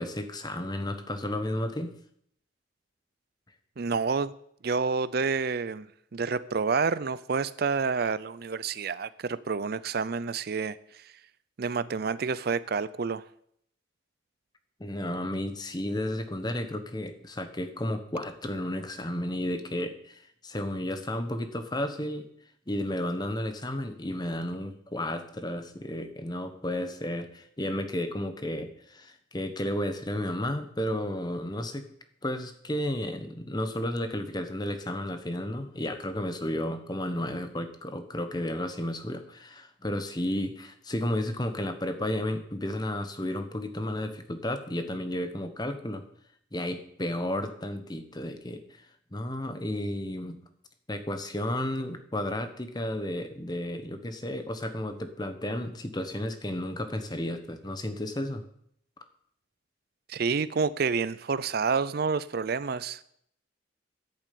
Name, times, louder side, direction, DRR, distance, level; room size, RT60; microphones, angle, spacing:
voice 1, 0.0-1.9 14.8-22.3 22.7-31.9 32.2-46.1 46.5-48.6 49.1-50.4 50.9-58.4, left 1 dB, 20° left, 8 dB, 1.1 m, -32 dB
voice 2, 3.8-4.3 4.6-5.9 6.1-11.0 11.6-13.2 60.1-63.0, right 5 dB, 55° right, 16 dB, 0.5 m, -29 dB
10.5 x 8.7 x 8.6 m, 0.69 s
head